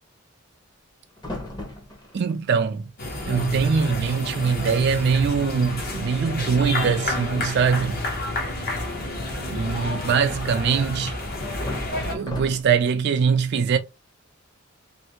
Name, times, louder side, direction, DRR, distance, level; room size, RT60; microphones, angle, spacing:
sound 1, 1.2-2.4 3.2-3.3 3.5-3.9 4.2-4.4 4.9-5.0 5.4-5.8 6.8-7.4 9.4-10.3 11.3-13.0, left 1 dB, 20° left, 0.8 m, -38 dB
voice 1, 2.1-2.9 3.3-8.0 9.5-11.2 12.1-13.8, right 6 dB, 55° right, 0.3 m, -22 dB
sound 2, 3.0-12.2, left 2 dB, 45° left, 0.9 m, -30 dB
3.2 x 2.6 x 2.9 m
head